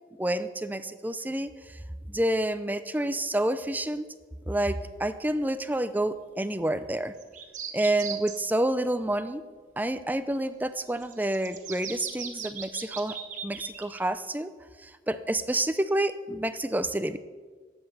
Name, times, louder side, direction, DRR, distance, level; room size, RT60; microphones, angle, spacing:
voice 1, 0.2-1.5 2.1-4.0 4.5-7.1 7.7-9.4 9.8-13.2 13.4-14.5 14.8-17.2, right 1 dB, 10° right, 12 dB, 0.5 m, -28 dB
sound 1, 7.2-8.4 10.9-14.0, right 7 dB, 45° right, 1.3 m, -38 dB
12.0 x 8.0 x 7.7 m, 1.5 s
head